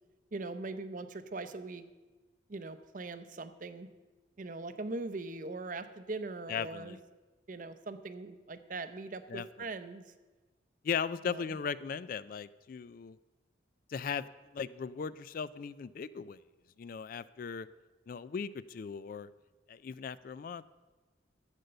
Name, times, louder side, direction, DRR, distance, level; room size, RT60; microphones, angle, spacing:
voice 1, 0.3-1.8 2.5-3.9 4.4-7.0 7.5-10.0 11.2-11.4, right 3 dB, 45° right, 12 dB, 0.6 m, -41 dB
voice 2, 6.5-7.0 9.3-9.7 10.8-13.2 13.9-14.3 14.5-16.4 16.8-17.7 18.1-19.3 19.7-20.6, left 6 dB, 50° left, 17 dB, 0.3 m, -38 dB
11.5 x 8.1 x 6.6 m, 1.3 s
head